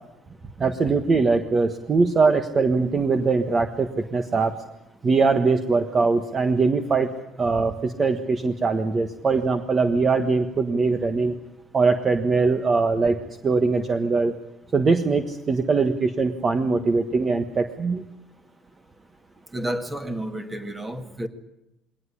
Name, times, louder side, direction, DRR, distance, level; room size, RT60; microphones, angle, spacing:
voice 1, 0.6-4.5 5.0-7.1 7.4-11.4 11.7-14.3 14.7-18.1, right 4 dB, 25° right, 8 dB, 1.3 m, -22 dB
voice 2, 19.5-21.3, right 1 dB, 10° right, 7 dB, 2.0 m, -30 dB
22.0 x 18.5 x 9.9 m, 0.91 s
cardioid pair, 150°, 0 cm